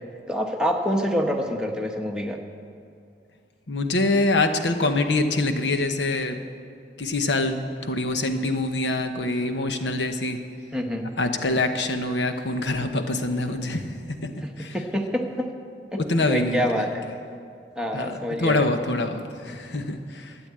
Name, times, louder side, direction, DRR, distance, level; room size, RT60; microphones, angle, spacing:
voice 1, 0.3-2.4 10.7-11.1 14.4-15.5 15.9-17.0 17.8-18.7, equal, 5° right, 1 dB, 1.1 m, -27 dB
voice 2, 3.7-6.4 7.0-7.6 7.8-10.4 11.2-14.3 14.6-14.8 16.0-16.9 17.9-20.4, left 2 dB, 75° left, 7 dB, 1.0 m, -25 dB
12.0 x 9.1 x 8.7 m, 2.4 s
head